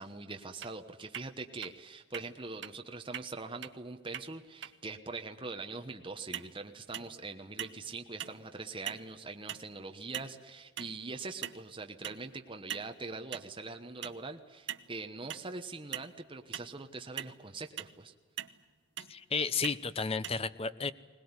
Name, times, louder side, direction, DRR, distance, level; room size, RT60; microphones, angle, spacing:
voice 1, 0.0-18.1, right 3 dB, 25° right, 5 dB, 1.1 m, -43 dB
sound 1, 0.6-0.7 1.1-1.3 1.6-1.7 2.1-2.3 2.6-2.7 3.1-3.3 3.6-3.7 4.1-4.3 4.6-4.7 6.3-6.5 6.9-7.2 7.6-7.8 8.2-8.4 8.9-9.1 9.5-9.7 10.1-10.4 10.8-11.0 11.4-11.7 12.0-12.2 12.7-12.9 13.3-13.5 14.0-14.2 14.7-14.9 15.3-15.5 15.9-16.1 16.5-16.7 17.2-17.3 17.8-17.9 18.4-18.6 19.0-19.1 19.6-19.8 20.2-20.3, right 11 dB, 60° right, 0.9 m, -41 dB
voice 2, 19.1-20.9, left 5 dB, 30° left, 14 dB, 0.8 m, -32 dB
21.5 x 19.5 x 9.7 m, 1.5 s
head